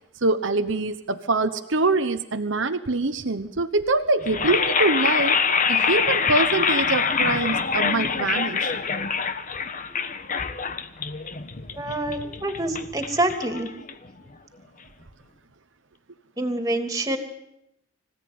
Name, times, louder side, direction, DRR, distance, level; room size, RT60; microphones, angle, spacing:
voice 1, 0.2-5.4 5.7-8.8, right 3 dB, 65° right, 7 dB, 1.1 m, -24 dB
sound 1, 4.2-14.3, left 5 dB, 40° left, 1.3 m, -25 dB
voice 2, 11.8-13.7 16.4-17.2, right 1 dB, 15° right, 5 dB, 2.8 m, -26 dB
25.5 x 16.5 x 9.4 m, 0.84 s
head